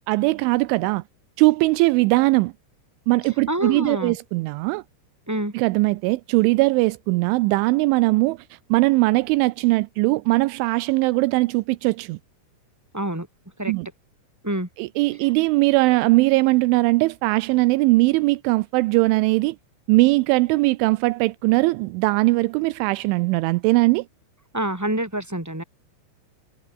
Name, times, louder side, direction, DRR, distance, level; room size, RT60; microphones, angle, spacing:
voice 1, 0.1-1.0 1.4-2.5 3.1-4.8 5.5-12.2 13.7-13.9 14.8-19.6 19.9-24.1, right 22 dB, 85° right, 3.1 m, -20 dB
voice 2, 3.5-4.2 5.3-5.5 12.9-13.3 13.6-13.7 14.4-14.7 24.5-25.6, right 1 dB, 5° right, 1.8 m, -26 dB
omnidirectional pair, 5.5 m